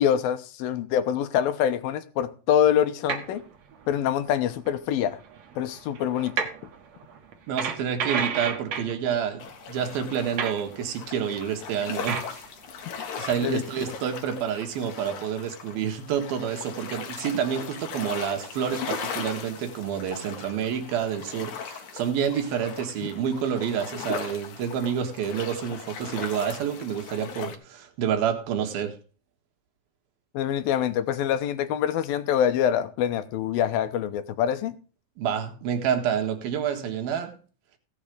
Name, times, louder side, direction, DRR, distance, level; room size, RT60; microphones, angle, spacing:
voice 1, 0.0-3.4 3.9-5.2 5.6-6.5 13.4-13.6 30.3-34.7, left 9 dB, 80° left, 2.7 m, -25 dB
sound 1, 3.1-3.4 3.7-4.1 4.7-4.8 5.0-9.0 9.9-10.8 11.6-11.8 12.1-12.4, right 6 dB, 55° right, 2.3 m, -31 dB
voice 2, 7.5-12.4 13.2-29.0 35.2-37.4, right 8 dB, 80° right, 3.5 m, -28 dB
sound 2, 9.4-27.6, left 6 dB, 60° left, 2.5 m, -38 dB
16.0 x 7.3 x 5.0 m
omnidirectional pair, 4.2 m